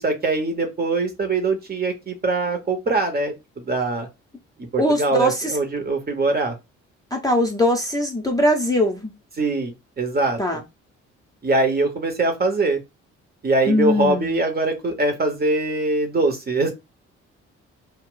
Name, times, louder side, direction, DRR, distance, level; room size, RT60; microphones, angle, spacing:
voice 1, 0.0-4.1 4.7-6.6 9.4-10.4 11.4-12.8 13.4-16.7, right 2 dB, 25° right, 4 dB, 0.9 m, -22 dB
voice 2, 4.8-5.6 7.1-9.1 10.4-10.6 13.7-14.4, left 1 dB, 10° left, 0 dB, 0.7 m, -21 dB
2.3 x 2.1 x 3.7 m, 0.23 s
figure-of-eight pair, 45°, 36 cm